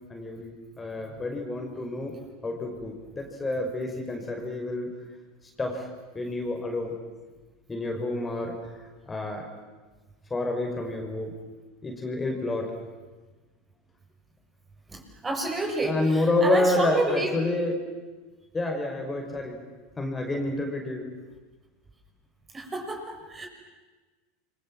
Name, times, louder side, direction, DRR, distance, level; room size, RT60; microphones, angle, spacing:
voice 1, 0.1-2.1 2.4-4.9 5.6-5.9 6.1-6.9 7.7-9.5 10.3-11.3 11.8-12.7 15.8-17.8 18.5-19.6 20.0-21.1, left 2 dB, 20° left, 3 dB, 5.6 m, -29 dB
voice 2, 14.9-16.0 16.4-17.3 22.5-23.5, right 2 dB, 20° right, 2 dB, 7.0 m, -29 dB
29.5 x 24.0 x 7.7 m, 1.3 s
hypercardioid pair, 85°, 0 cm